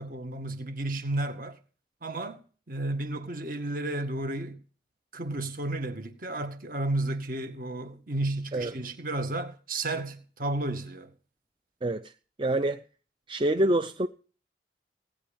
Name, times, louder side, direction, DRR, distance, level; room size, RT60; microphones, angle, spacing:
voice 1, 0.0-1.6 2.0-2.4 2.7-4.6 5.1-11.1, right 2 dB, 50° right, 1.9 m, -32 dB
voice 2, 11.8-12.1 12.4-12.8 13.3-14.1, right 1 dB, 25° right, 0.6 m, -26 dB
18.0 x 10.5 x 5.2 m
head